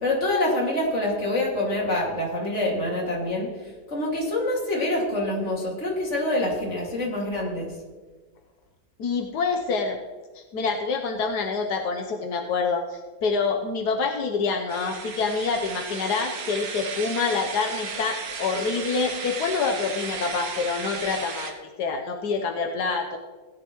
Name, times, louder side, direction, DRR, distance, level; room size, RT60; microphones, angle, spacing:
voice 1, 0.0-3.5 3.9-7.7, left 1 dB, 45° left, -2 dB, 2.7 m, -26 dB
voice 2, 9.0-10.0 10.3-23.2, left 4 dB, 90° left, 3 dB, 1.5 m, -27 dB
sound 1, 14.7-21.5, right 5 dB, 65° right, 1.5 m, -35 dB
17.5 x 10.5 x 3.1 m, 1.3 s
omnidirectional pair, 1.7 m